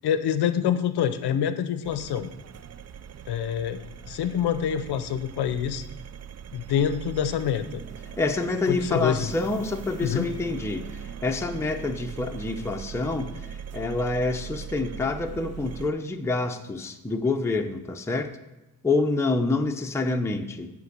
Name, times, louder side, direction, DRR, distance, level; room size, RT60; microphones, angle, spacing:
voice 1, 0.0-2.3 3.3-5.8 6.5-7.8 8.7-9.3 10.0-10.3, left 9 dB, 85° left, 12 dB, 0.7 m, -26 dB
sound 1, 1.8-15.9, right 8 dB, 45° right, 0.4 m, -40 dB
voice 2, 8.2-18.3 18.8-20.7, left 3 dB, 5° left, 4 dB, 0.6 m, -27 dB
8.0 x 5.3 x 6.6 m, 0.98 s
cardioid pair, 80°, 39 cm